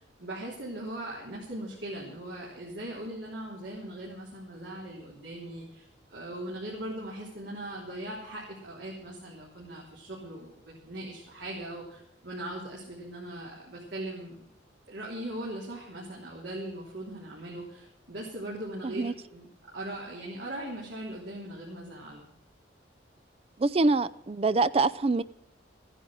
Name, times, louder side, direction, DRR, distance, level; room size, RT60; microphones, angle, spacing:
voice 1, 0.0-14.4 14.9-22.3, right 1 dB, 65° right, 3.5 m, -40 dB
voice 2, 23.6-25.2, right 3 dB, 30° right, 0.4 m, -25 dB
14.5 x 10.0 x 6.5 m
head